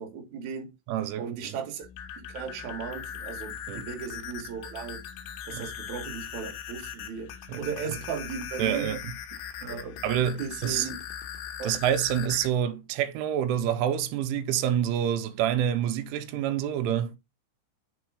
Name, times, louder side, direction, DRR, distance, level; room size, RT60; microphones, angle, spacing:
voice 1, 0.0-0.7 1.2-1.9 2.1-5.0 5.5-7.3 7.6-8.9 9.6-10.0 10.4-11.0 11.6-11.8, right 6 dB, 65° right, 1.8 m, -36 dB
voice 2, 0.9-1.6 3.7-3.9 5.5-5.7 7.5-7.7 8.6-9.1 10.0-10.9 11.6-17.1, right 10 dB, 90° right, 3.1 m, -27 dB
sound 1, 1.8-12.5, left 9 dB, 75° left, 2.8 m, -40 dB
6.5 x 4.0 x 4.8 m
omnidirectional pair, 5.6 m